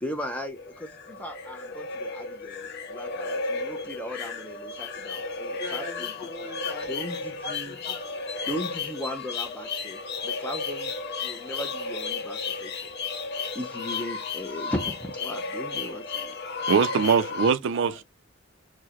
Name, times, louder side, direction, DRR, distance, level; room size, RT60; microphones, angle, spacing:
voice 1, 0.0-6.1 6.9-7.8 8.5-10.9 11.2-12.9 13.5-16.4, equal, 5° left, 0.4 m, -37 dB
sound 1, 0.6-17.5, left 4 dB, 55° left, 0.6 m, -33 dB
voice 2, 5.6-8.1 17.7-18.0, left 3 dB, 30° left, 1.4 m, -41 dB
voice 3, 16.7-18.0, right 6 dB, 60° right, 0.4 m, -22 dB
4.5 x 2.1 x 2.9 m
head